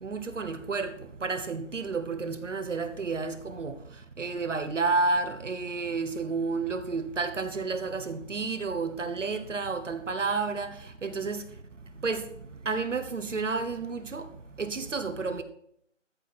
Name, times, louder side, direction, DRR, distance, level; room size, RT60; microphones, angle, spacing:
voice 1, 0.0-0.9 1.2-3.8 4.2-11.4 12.0-12.2 12.6-14.3 14.6-15.4, right 4 dB, 75° right, 1.3 m, -31 dB
13.5 x 7.5 x 4.2 m
figure-of-eight pair, 165°, 37 cm